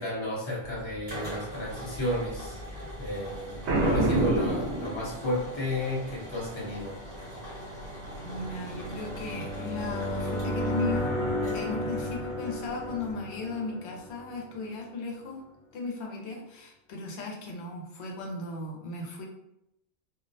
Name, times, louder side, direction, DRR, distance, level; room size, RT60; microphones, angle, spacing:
voice 1, 0.0-2.6 3.0-7.0, left 1 dB, 30° left, -6 dB, 0.7 m, -32 dB
sound 1, 0.6-13.1, equal, 35° right, 1.0 m, -43 dB
Boom, 3.6-5.5, right 1 dB, 80° right, 0.9 m, -26 dB
sound 2, 4.3-14.7, equal, 50° left, 0.4 m, -35 dB
voice 2, 8.2-11.2 11.5-15.4 15.7-19.3, left 3 dB, 75° left, 0 dB, 0.9 m, -36 dB
2.4 x 2.0 x 2.6 m, 0.83 s
omnidirectional pair, 1.1 m